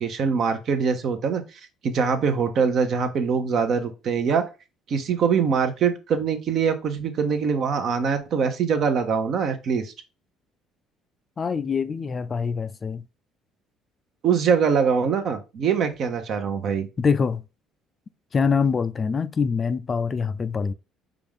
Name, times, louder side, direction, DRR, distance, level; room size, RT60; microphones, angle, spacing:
voice 1, 0.0-1.4 1.8-4.4 4.9-9.9 14.2-16.9, right 6 dB, 60° right, 0.8 m, -23 dB
voice 2, 11.4-13.0 17.0-17.4 18.3-20.7, left 5 dB, 35° left, 0.3 m, -24 dB
4.9 x 2.4 x 3.5 m
supercardioid pair, 90°, 0 cm